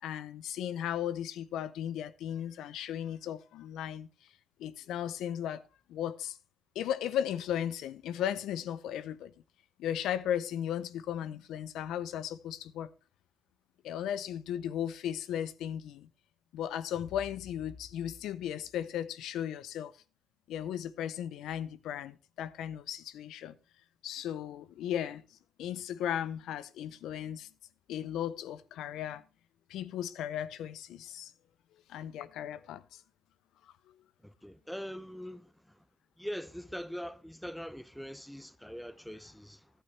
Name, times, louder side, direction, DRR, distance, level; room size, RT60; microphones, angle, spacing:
voice 1, 0.0-4.1 4.6-5.6 5.9-6.4 6.8-9.3 9.8-12.9 13.8-16.1 16.5-19.9 20.5-23.5 24.0-25.2 25.6-27.5 27.9-29.2 29.7-31.3 31.9-33.0, left 10 dB, 85° left, 0.5 m, -36 dB
voice 2, 34.2-35.8 36.2-39.7, equal, ahead, 0.6 m, -42 dB
11.5 x 8.9 x 3.2 m
cardioid pair, 90°, 0 cm